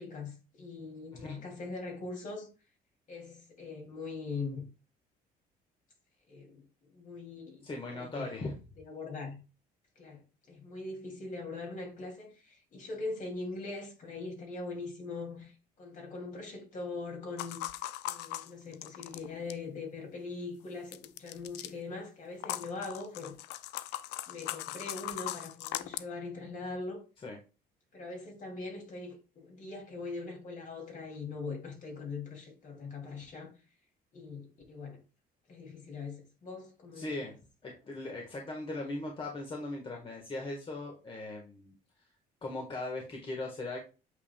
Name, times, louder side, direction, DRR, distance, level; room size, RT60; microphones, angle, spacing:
voice 1, 0.0-2.5 3.1-4.6 6.3-8.3 8.8-9.4 10.0-10.2 10.5-17.6 18.1-23.3 24.3-27.0 27.9-33.5 34.1-35.0 35.5-37.3, left 3 dB, 50° left, 2.7 m, -41 dB
voice 2, 1.1-1.4 7.6-8.6 27.2-27.4 36.9-37.4 37.6-41.7 42.0-42.1 42.4-43.8, left 2 dB, 30° left, 1.5 m, -39 dB
sound 1, 17.4-19.7 20.9-21.7 22.4-26.0, left 14 dB, 90° left, 0.4 m, -39 dB
8.3 x 5.4 x 2.3 m
cardioid pair, 110°, 17 cm